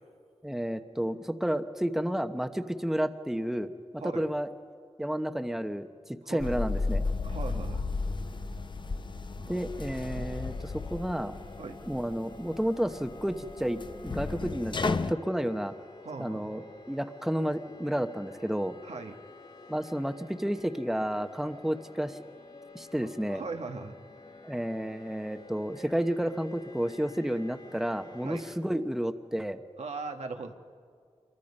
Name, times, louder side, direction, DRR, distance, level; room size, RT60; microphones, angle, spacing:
voice 1, 0.4-3.7 4.0-4.5 5.0-5.9 6.3-7.0 9.5-11.3 11.9-15.7 16.2-18.7 19.7-22.2 22.7-23.4 24.4-29.6, equal, 5° right, 8 dB, 1.0 m, -31 dB
voice 2, 4.0-4.3 6.2-6.4 7.2-7.9 9.3-9.6 10.1-10.4 11.6-11.8 16.0-16.5 18.8-19.2 23.0-23.9 28.2-28.4 29.8-30.5, right 4 dB, 90° right, 4 dB, 1.3 m, -39 dB
sound 1, 6.4-15.1, left 3 dB, 45° left, 0.7 m, -34 dB
sound 2, 9.5-28.6, left 3 dB, 90° left, 7.3 m, -51 dB
26.5 x 23.0 x 5.4 m, 2.1 s
wide cardioid pair, 65°, 11 cm